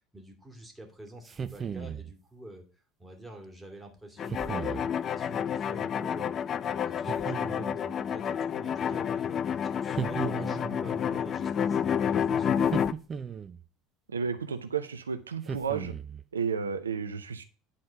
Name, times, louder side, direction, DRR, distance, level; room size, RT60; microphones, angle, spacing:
voice 1, 0.1-2.6 3.0-6.4 6.7-9.4 9.8-12.8, right 1 dB, 5° right, 1 dB, 2.7 m, -47 dB
sound 1, 1.3-2.1 4.3-4.9 7.1-7.9 10.0-10.8 12.6-13.6 15.5-16.2, right 6 dB, 30° right, 0.7 m, -36 dB
sound 2, 4.2-12.9, left 8 dB, 40° left, 0.4 m, -29 dB
voice 2, 14.1-15.9 16.3-17.4, right 6 dB, 85° right, 10 dB, 0.5 m, -32 dB
10.0 x 4.3 x 4.8 m, 0.38 s
figure-of-eight pair, 70°, 0 cm